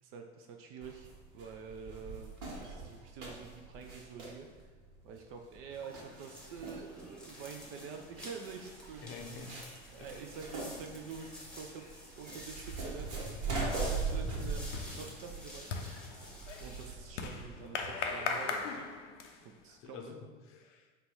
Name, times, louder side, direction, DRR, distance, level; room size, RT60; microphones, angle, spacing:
voice 1, 0.0-4.5 5.0-9.2 9.9-15.7 16.6-18.9 19.4-20.1, right 5 dB, 40° right, 4 dB, 0.4 m, -47 dB
sound 1, 0.8-17.6, right 3 dB, 65° right, 1.2 m, -41 dB
sound 2, 5.7-16.9, left 1 dB, 5° left, 1.0 m, -50 dB
voice 2, 9.0-9.6 10.0-10.2 14.1-14.4 19.7-20.9, left 5 dB, 40° left, 2 dB, 0.6 m, -48 dB
sound 3, 13.5-13.6 13.8-19.6, left 5 dB, 75° left, 0.6 m, -39 dB
3.9 x 2.3 x 4.3 m, 1.3 s
hypercardioid pair, 80°, 36 cm